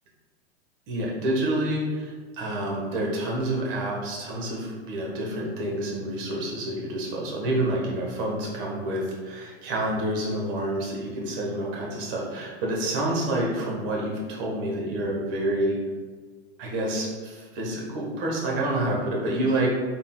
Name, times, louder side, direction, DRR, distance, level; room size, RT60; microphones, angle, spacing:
voice 1, 0.9-15.8 16.6-19.7, right 1 dB, 55° right, -2 dB, 1.3 m, -28 dB
4.0 x 3.7 x 2.3 m, 1.5 s
hypercardioid pair, 125°, 33 cm